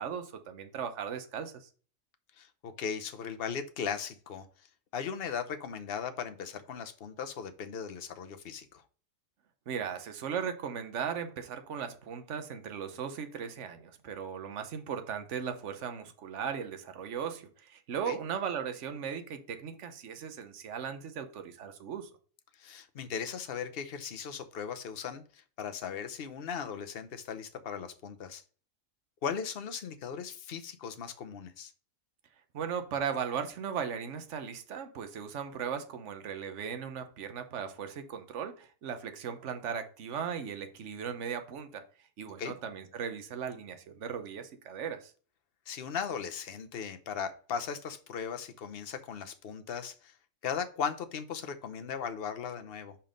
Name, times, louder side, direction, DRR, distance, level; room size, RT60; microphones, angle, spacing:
voice 1, 0.0-1.7 9.7-22.1 32.5-41.8 42.2-45.1, right 7 dB, 60° right, 1.2 m, -37 dB
voice 2, 2.4-4.7 4.9-8.8 18.1-18.2 22.6-28.4 29.2-31.7 42.4-42.6 45.7-50.1 50.4-53.0, left 7 dB, 50° left, 0.9 m, -38 dB
5.5 x 4.4 x 5.1 m
omnidirectional pair, 1.4 m